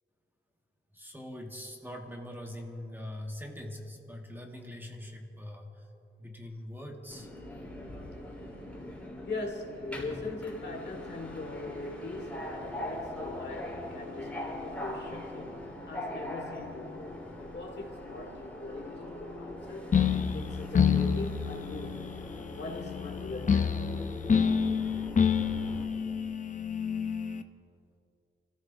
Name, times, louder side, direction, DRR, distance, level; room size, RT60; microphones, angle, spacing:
voice 1, 0.9-5.9 6.2-7.3, left 1 dB, 10° right, 1.1 m, -42 dB
Subway metro underground, 7.1-25.8, left 1 dB, 5° left, 3.2 m, -42 dB
voice 2, 9.3-19.9 20.3-22.1 22.5-23.8, left 2 dB, 55° left, 1.7 m, -41 dB
sound 1, 19.9-27.4, left 6 dB, 40° left, 0.6 m, -28 dB
29.5 x 14.5 x 2.6 m
wide cardioid pair, 165°, 21 cm